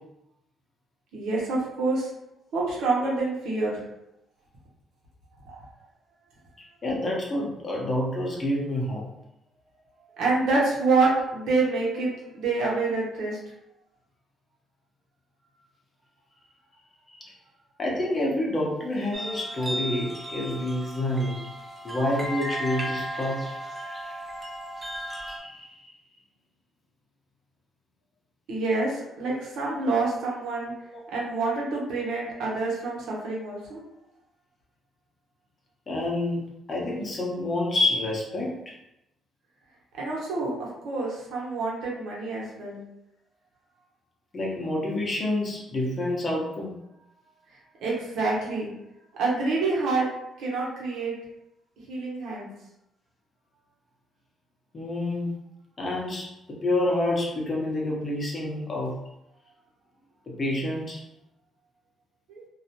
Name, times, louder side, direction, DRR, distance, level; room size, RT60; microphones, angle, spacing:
voice 1, 1.1-2.1 2.5-3.8 5.5-5.6 10.2-13.4 28.5-30.7 31.1-33.8 39.9-42.8 47.8-48.7 49.1-50.1 50.4-51.2 51.9-52.5 62.3-62.4, right 3 dB, 80° right, -4 dB, 0.8 m, -27 dB
voice 2, 6.8-9.1 11.9-12.1 17.1-17.2 17.8-21.5 21.8-23.4 25.1-25.9 30.9-31.0 35.9-36.4 36.7-38.7 44.3-46.7 54.7-55.3 55.8-58.9 60.4-61.0, left 1 dB, 40° left, -3 dB, 0.8 m, -28 dB
sound 1, 19.1-25.4, equal, 20° right, 0.5 m, -35 dB
2.3 x 2.0 x 2.8 m, 0.86 s
cardioid pair, 90°, 0 cm